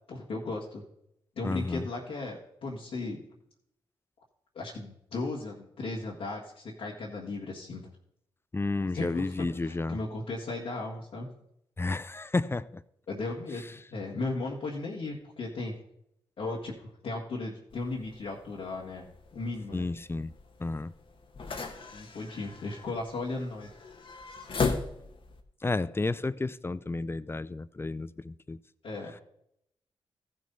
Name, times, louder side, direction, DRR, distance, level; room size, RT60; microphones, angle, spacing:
voice 1, 0.1-0.8 1.4-3.2 4.5-7.9 8.9-11.3 13.1-15.7 16.4-19.8 21.9-23.7 28.8-29.2, left 2 dB, 75° left, 1.8 m, -36 dB
voice 2, 1.4-1.9 8.5-10.0 11.8-12.8 19.7-20.3 20.6-20.9 25.6-28.6, left 3 dB, 25° left, 0.5 m, -31 dB
sound 1, 17.7-25.4, left 4 dB, 60° left, 1.2 m, -38 dB
14.5 x 6.2 x 4.1 m
supercardioid pair, 45°, 10 cm